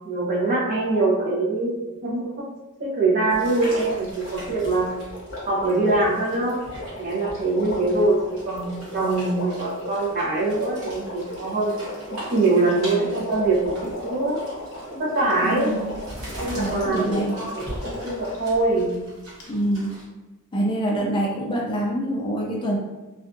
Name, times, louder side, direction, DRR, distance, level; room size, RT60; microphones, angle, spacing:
voice 1, 0.0-1.7 2.0-2.3 2.8-4.9 5.5-6.6 7.0-8.2 8.4-11.8 12.3-14.4 14.9-15.7 16.3-19.0, right 2 dB, 40° right, -4 dB, 0.7 m, -23 dB
sound 1, 3.3-20.0, equal, 75° right, 1.1 m, -41 dB
Water, 3.5-18.5 19.4-19.5, left 1 dB, 55° left, 0.6 m, -37 dB
voice 2, 15.4-15.9 16.5-17.4 19.5-19.9 20.5-22.8, right 1 dB, 20° left, -2 dB, 0.3 m, -25 dB
2.5 x 2.3 x 2.4 m, 1.1 s
head